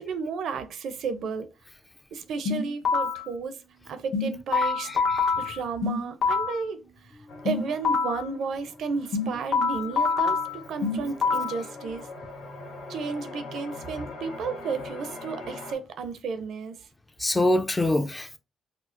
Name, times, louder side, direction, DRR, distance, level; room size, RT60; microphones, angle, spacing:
voice 1, 0.0-1.5 2.1-3.6 3.9-4.9 5.4-6.8 7.4-12.1 12.9-16.8, right 5 dB, 70° right, 0.5 m, -33 dB
sound 1, 2.5-3.3 4.1-6.7 7.5-8.3 9.1-11.7, left 4 dB, 50° left, 0.8 m, -26 dB
voice 2, 4.6-5.2 17.2-18.4, left 1 dB, 15° left, 0.5 m, -25 dB
sound 2, 7.3-15.7, left 3 dB, 80° left, 0.8 m, -42 dB
4.3 x 2.0 x 2.5 m
cardioid pair, 90°, 0 cm